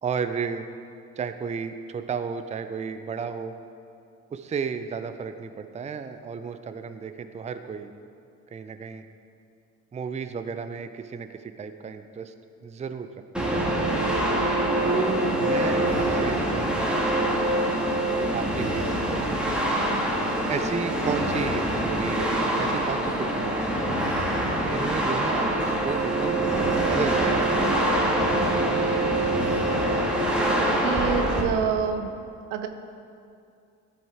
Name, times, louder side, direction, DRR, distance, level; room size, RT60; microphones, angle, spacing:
voice 1, 0.0-0.7 1.2-3.5 4.3-7.9 8.5-9.0 9.9-12.3 12.6-13.1 13.4-13.5 14.8-19.7 20.5-24.0 24.7-26.4 26.7-27.4, right 6 dB, 20° right, 9 dB, 0.5 m, -33 dB
sound 1, 13.3-31.4, right 1 dB, ahead, 1.6 m, -24 dB
voice 2, 30.6-32.1 32.5-32.7, right 7 dB, 75° right, 7 dB, 0.7 m, -28 dB
13.5 x 5.2 x 3.5 m, 2.5 s
hypercardioid pair, 50°, 40 cm